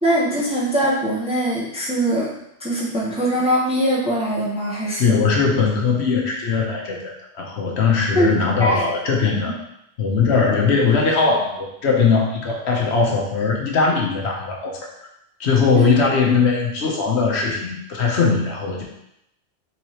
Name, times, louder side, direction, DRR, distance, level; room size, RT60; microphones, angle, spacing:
voice 1, 0.0-2.3 2.6-5.2 8.1-8.3 8.6-8.8 15.7-15.9, equal, 5° right, -5 dB, 0.8 m, -21 dB
voice 2, 5.0-9.5 10.0-14.8 15.4-18.8, left 5 dB, 65° left, -1 dB, 1.0 m, -20 dB
4.7 x 3.9 x 2.9 m, 0.79 s
omnidirectional pair, 1.2 m